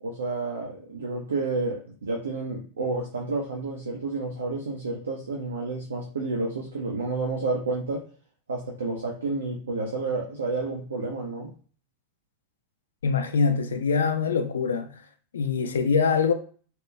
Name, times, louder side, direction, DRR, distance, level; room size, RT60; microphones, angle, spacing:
voice 1, 0.0-8.0 8.5-11.5, right 3 dB, 70° right, 0.4 m, -30 dB
voice 2, 13.0-14.9 15.3-16.3, left 5 dB, 65° left, 0.3 m, -24 dB
2.8 x 2.2 x 2.2 m
figure-of-eight pair, 90°, 0 cm